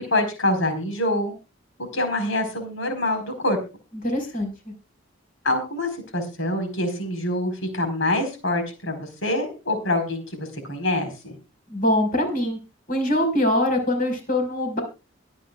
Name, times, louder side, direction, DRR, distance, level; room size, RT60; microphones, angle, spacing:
voice 1, 0.1-1.3 1.9-3.6 5.4-11.4, left 1 dB, 70° left, 6 dB, 4.6 m, -25 dB
voice 2, 4.0-4.7 11.7-12.6 12.9-14.8, left 1 dB, 45° left, 5 dB, 4.9 m, -23 dB
22.5 x 8.9 x 2.4 m, 0.30 s
head